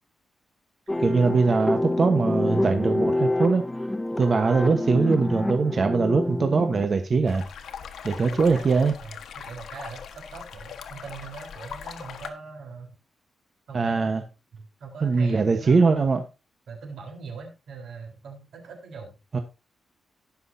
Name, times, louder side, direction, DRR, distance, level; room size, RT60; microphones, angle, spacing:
sound 1, 0.9-6.9, left 1 dB, 10° left, 0.6 m, -27 dB
voice 1, 1.0-3.6 4.2-7.4 8.0-8.9 13.7-14.2 15.0-16.2 19.3-19.4, right 4 dB, 45° right, 1.1 m, -22 dB
voice 2, 2.5-2.8 6.2-6.5 8.1-12.9 13.7-14.1 14.5-15.9 16.7-19.2, right 4 dB, 85° right, 3.8 m, -41 dB
sound 2, 7.3-12.3, left 7 dB, 90° left, 1.2 m, -40 dB
18.5 x 6.2 x 2.7 m
cardioid pair, 105°, 0 cm